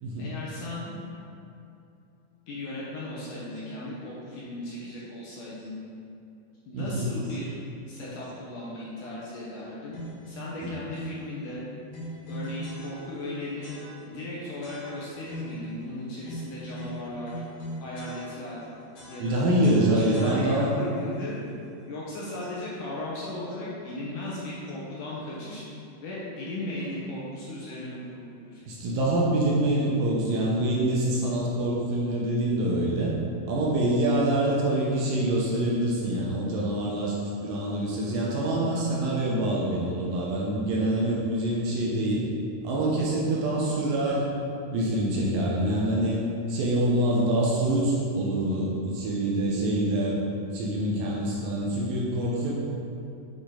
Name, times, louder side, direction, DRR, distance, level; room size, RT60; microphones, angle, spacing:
voice 1, 0.2-0.9 2.5-5.8 6.7-7.5 7.9-11.7 12.3-13.8 14.1-17.4 17.8-18.7 19.1-19.5 19.9-21.4 21.9-28.6, left 1 dB, 70° left, -7 dB, 2.2 m, -36 dB
voice 2, 6.7-7.4 10.6-10.7 19.2-20.7 28.7-33.1 33.4-37.1 37.4-42.2 42.6-44.3 44.7-46.2 46.5-50.2 50.5-52.5, right 1 dB, 75° right, -4 dB, 2.3 m, -25 dB
sound 1, 9.9-10.4 10.9-11.3 11.9-13.3 13.6-14.2 14.6-15.7 16.2-18.6 18.9-20.8, right 1 dB, 50° left, 1.7 m, -41 dB
8.8 x 5.1 x 3.9 m, 2.7 s
omnidirectional pair, 4.6 m